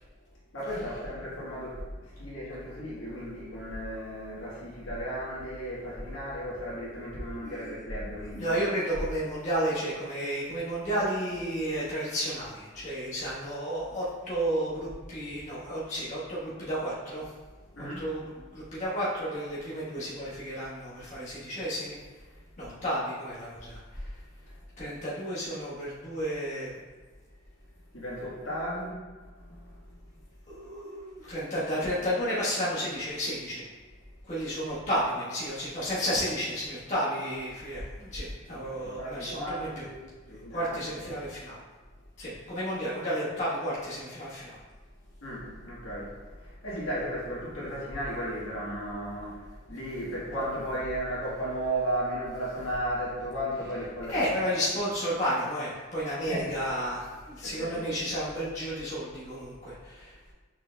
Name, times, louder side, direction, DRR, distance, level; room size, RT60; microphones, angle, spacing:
voice 1, 0.5-8.6 17.7-18.1 18.6-18.7 24.5-24.6 27.9-29.1 29.4-29.9 38.5-41.1 45.2-54.2 56.3-56.5 57.4-57.8, equal, 85° left, -7 dB, 1.3 m, -35 dB
voice 2, 8.3-17.3 17.8-22.0 22.6-24.1 24.8-26.7 30.5-33.6 34.3-39.8 40.5-41.6 42.2-44.6 54.1-60.3, equal, 35° left, -10 dB, 1.2 m, -32 dB
6.0 x 3.8 x 2.2 m, 1.4 s
head